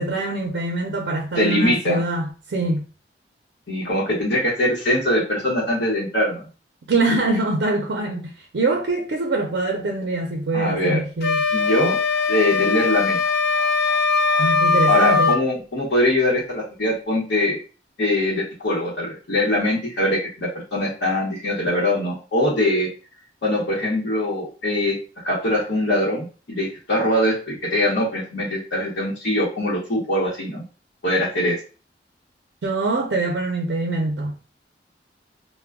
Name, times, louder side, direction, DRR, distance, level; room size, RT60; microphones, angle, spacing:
voice 1, 0.0-2.8 6.9-11.4 14.4-15.4 32.6-34.4, right 2 dB, 75° right, 0.5 m, -24 dB
voice 2, 1.3-2.0 3.7-6.4 10.5-11.0 11.5-12.0 12.3-13.2 14.9-17.6 18.0-22.9 23.4-25.0 25.2-30.6 31.0-31.6, left 1 dB, 80° left, 0.9 m, -22 dB
sound 1, 11.2-15.4, left 4 dB, 60° left, 0.4 m, -20 dB
2.2 x 2.1 x 3.4 m
head